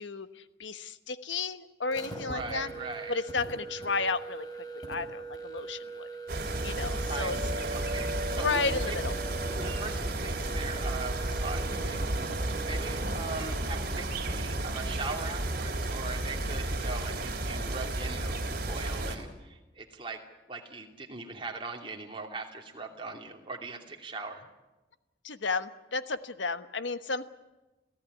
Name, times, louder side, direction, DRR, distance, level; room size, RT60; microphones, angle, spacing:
voice 1, 0.0-2.7 3.1-4.5 4.7-6.1 6.6-7.4 8.1-9.1 25.2-27.2, left 4 dB, 80° left, 11 dB, 1.2 m, -33 dB
sound 1, 1.8-13.2, right 3 dB, 20° left, 5.6 m, -42 dB
voice 2, 2.3-3.2 7.1-9.0 9.6-20.2 20.5-24.5, right 3 dB, 25° right, 2 dB, 2.7 m, -40 dB
sound 2, 6.3-19.2, right 2 dB, 50° right, 3.4 m, -32 dB
28.5 x 15.5 x 9.8 m, 1.1 s
head